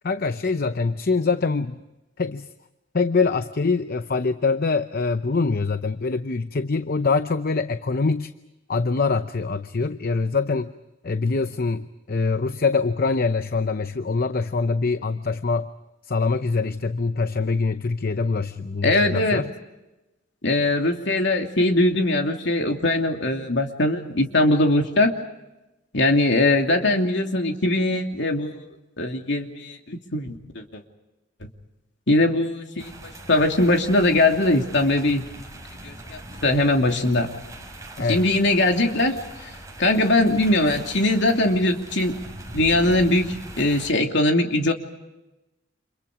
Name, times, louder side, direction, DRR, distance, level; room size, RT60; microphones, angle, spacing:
voice 1, 0.0-1.8 2.2-2.5 2.9-8.3 8.7-10.7 11.0-15.7 16.1-19.5 38.0-38.2, left 4 dB, 50° left, 10 dB, 0.7 m, -24 dB
voice 2, 18.8-19.4 20.4-25.2 25.9-28.6 29.0-30.6 32.1-33.0 33.3-35.3 35.8-37.3 38.1-39.2 39.8-42.2 42.5-44.7, left 2 dB, 65° left, 3 dB, 2.9 m, -21 dB
sound 1, 32.8-43.9, right 1 dB, 15° right, 5.5 m, -41 dB
30.0 x 28.0 x 5.0 m, 1.0 s
head